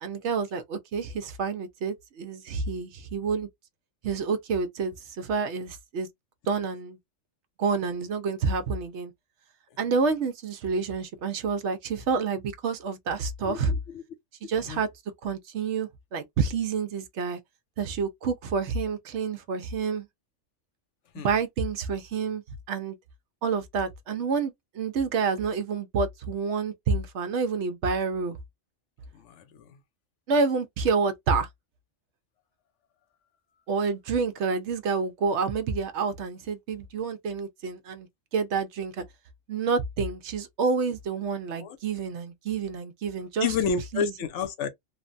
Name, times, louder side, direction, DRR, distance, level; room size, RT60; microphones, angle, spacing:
voice 1, 0.0-3.5 4.0-6.1 6.5-7.0 7.6-9.1 9.8-13.7 14.4-14.9 15.2-17.4 17.8-20.1 21.2-23.0 23.4-28.4 30.3-31.5 33.7-38.1 38.3-39.0 39.5-43.5 43.9-44.1, right 5 dB, 70° right, 0.9 m, -28 dB
voice 2, 13.4-14.0 14.4-14.8 21.1-21.3 29.1-29.8 41.5-41.8 43.4-44.7, left 6 dB, 70° left, 0.9 m, -31 dB
3.2 x 2.1 x 2.4 m
omnidirectional pair, 1.3 m